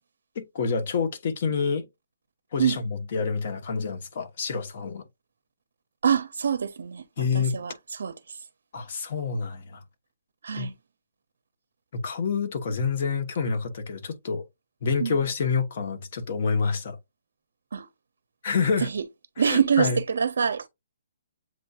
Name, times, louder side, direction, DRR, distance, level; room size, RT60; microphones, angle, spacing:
voice 1, 0.4-1.9 2.5-5.0 7.2-7.5 8.7-9.8 10.6-10.7 11.9-14.4 14.8-17.0 18.4-18.9 19.4-20.0, left 5 dB, 45° left, 1.0 m, -27 dB
voice 2, 6.0-7.0 7.3-8.4 10.4-10.7 15.0-15.2 17.7-17.9 18.8-19.0 19.4-20.7, right 7 dB, 75° right, 0.5 m, -25 dB
7.5 x 2.6 x 2.3 m
hypercardioid pair, 165°, 0 cm